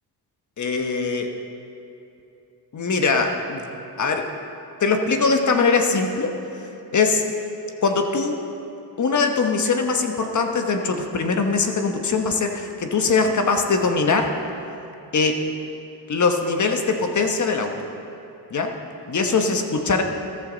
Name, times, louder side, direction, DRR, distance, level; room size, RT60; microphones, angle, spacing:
voice 1, 0.6-1.3 2.7-3.7 4.0-4.3 4.8-6.4 6.9-7.2 7.8-8.4 9.0-14.3 15.1-15.4 16.1-17.7 18.5-18.7 19.1-20.0, left 4 dB, 45° left, 4 dB, 1.2 m, -21 dB
14.0 x 14.0 x 4.0 m, 2.9 s
cardioid pair, 110°, 41 cm